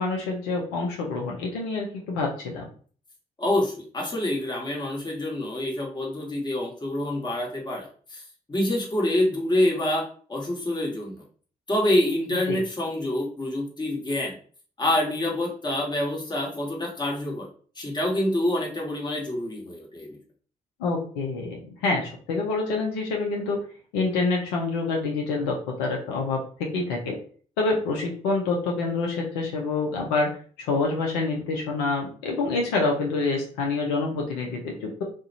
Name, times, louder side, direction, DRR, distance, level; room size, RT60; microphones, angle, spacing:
voice 1, 0.0-2.6 12.5-12.6 20.8-23.6 23.9-27.2 27.6-35.0, left 3 dB, 80° left, 0 dB, 0.5 m, -27 dB
voice 2, 3.4-8.2 8.5-11.2 11.7-14.4 14.8-17.5 17.7-20.2, left 1 dB, 25° left, -2 dB, 1.1 m, -26 dB
2.4 x 2.1 x 2.7 m, 0.43 s
hypercardioid pair, 45°, 18 cm